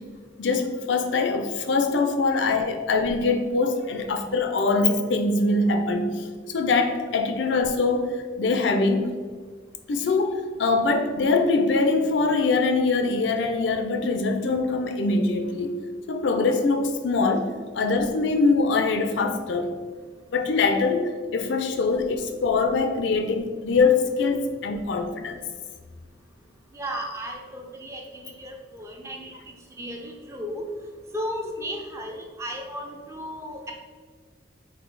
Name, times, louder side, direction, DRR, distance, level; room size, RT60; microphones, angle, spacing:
voice 1, 0.4-8.1 8.4-9.1 9.9-15.7 16.1-19.7 20.3-25.4, left 3 dB, 75° left, 6 dB, 0.5 m, -23 dB
voice 2, 19.7-20.0 26.7-30.7 31.1-33.7, equal, 15° right, 2 dB, 0.4 m, -35 dB
4.0 x 2.8 x 4.6 m, 1.5 s
head